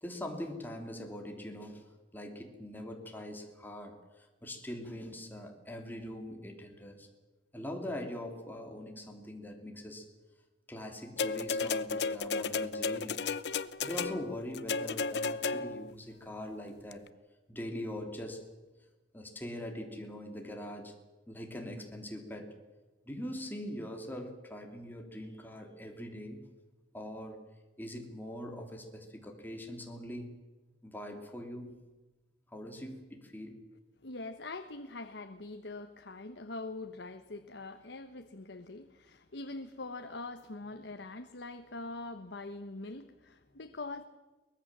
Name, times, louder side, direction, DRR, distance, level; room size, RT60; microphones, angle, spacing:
voice 1, 0.0-1.8 2.1-7.1 7.5-10.1 10.7-13.2 13.8-17.1 17.5-18.5 19.1-21.0 21.3-22.6 23.0-26.5 26.9-27.4 27.8-30.3 30.8-31.7 32.5-33.6, left 1 dB, 10° left, 3 dB, 3.0 m, -42 dB
sound 1, 11.2-15.9 16.9-17.0, left 4 dB, 70° left, 0.8 m, -33 dB
voice 2, 34.0-44.0, left 2 dB, 85° left, 8 dB, 1.2 m, -43 dB
23.0 x 20.0 x 7.5 m, 1.2 s
head